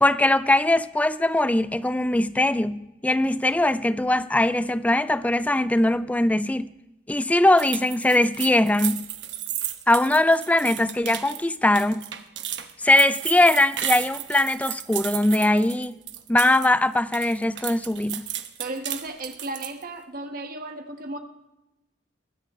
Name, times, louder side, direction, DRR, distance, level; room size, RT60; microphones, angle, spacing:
voice 1, 0.0-6.7 7.1-9.1 9.9-12.1 12.8-16.0 16.3-18.3, left 1 dB, 10° left, 0.4 m, -21 dB
sound 1, 7.6-16.7 17.0-19.8, right 11 dB, 70° right, 1.0 m, -33 dB
voice 2, 18.6-21.2, right 2 dB, 50° right, 1.5 m, -34 dB
22.5 x 9.9 x 3.2 m
head